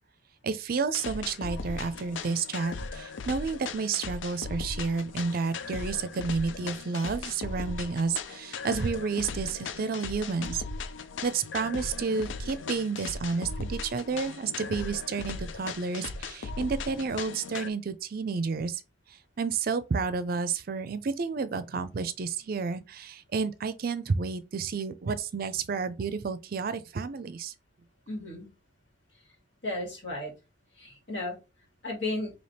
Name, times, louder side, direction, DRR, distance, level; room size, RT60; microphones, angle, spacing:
voice 1, 0.4-10.6 11.2-18.8 19.4-27.5, right 5 dB, 50° right, 0.4 m, -31 dB
sound 1, 0.9-17.7, left 4 dB, 85° left, 0.5 m, -38 dB
voice 2, 28.1-28.5 29.6-30.3 30.8-31.4 31.8-32.3, left 2 dB, 70° left, 1.9 m, -34 dB
3.3 x 2.8 x 4.2 m
head